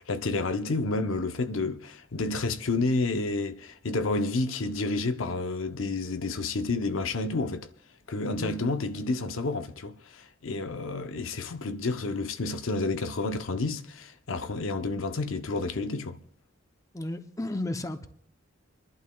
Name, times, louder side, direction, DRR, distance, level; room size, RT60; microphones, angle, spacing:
voice 1, 0.0-7.7 8.1-16.2, left 3 dB, 80° left, 0.7 m, -30 dB
voice 2, 16.9-18.1, left 1 dB, 15° left, 0.6 m, -33 dB
28.5 x 11.5 x 2.3 m
head